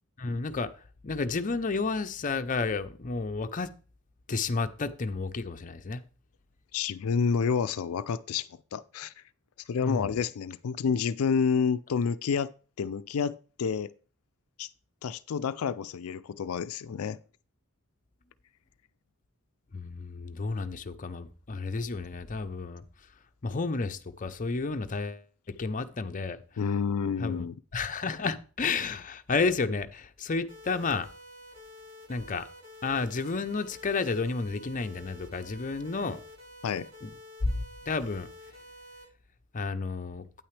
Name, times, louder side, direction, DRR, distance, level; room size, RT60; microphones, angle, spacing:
voice 1, 0.2-0.7 1.0-3.7 4.3-6.0 9.8-10.1 19.7-22.8 23.4-26.4 27.2-27.5 27.7-31.1 32.1-32.5 32.8-36.2 37.0-37.1 37.4-37.5 37.9-38.3 39.5-40.3, left 4 dB, 40° left, 0.6 m, -31 dB
voice 2, 6.7-9.1 9.7-12.5 12.8-13.9 14.6-14.7 15.0-17.2 26.6-27.6 36.6-36.9, left 6 dB, 85° left, 0.4 m, -29 dB
sound 1, 30.5-39.0, left 1 dB, 55° right, 5.8 m, -49 dB
9.0 x 8.9 x 3.2 m
head